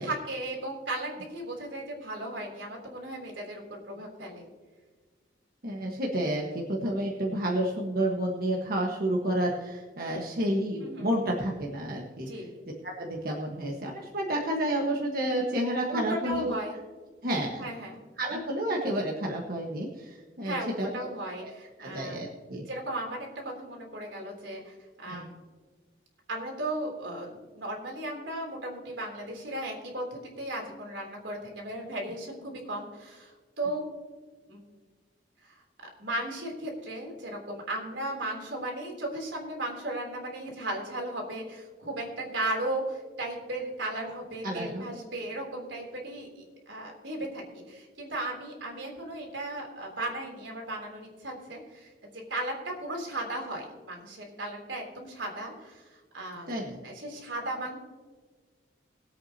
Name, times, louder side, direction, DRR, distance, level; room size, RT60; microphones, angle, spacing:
voice 1, 0.0-4.5 10.8-11.1 12.2-12.6 15.9-16.8 17.6-18.0 20.4-22.3 22.7-25.3 26.3-33.8 34.5-34.6 35.4-35.6 36.0-51.9 52.3-57.8, right 1 dB, 85° right, 0 dB, 3.5 m, -36 dB
voice 2, 5.6-12.3 12.8-16.5 17.2-17.6 18.2-21.0 21.4-21.5 21.8-22.6 25.1-25.2 44.4-44.9 56.5-56.8, right 1 dB, 50° right, -1 dB, 1.5 m, -30 dB
21.5 x 8.5 x 2.9 m, 1.4 s
head